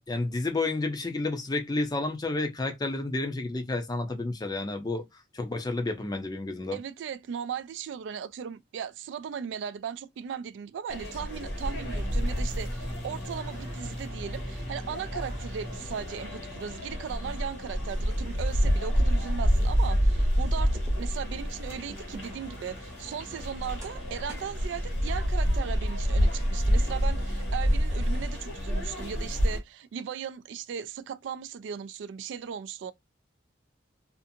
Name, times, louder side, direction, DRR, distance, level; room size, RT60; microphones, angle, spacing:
voice 1, 0.1-5.0 5.3-6.8, left 2 dB, 20° left, 0.5 m, -30 dB
voice 2, 6.7-32.9, right 7 dB, 75° right, 0.3 m, -37 dB
sound 1, 10.9-29.6, equal, 65° left, 1.3 m, -28 dB
sound 2, 11.7-28.3, equal, 20° right, 0.7 m, -44 dB
2.6 x 2.5 x 2.6 m
head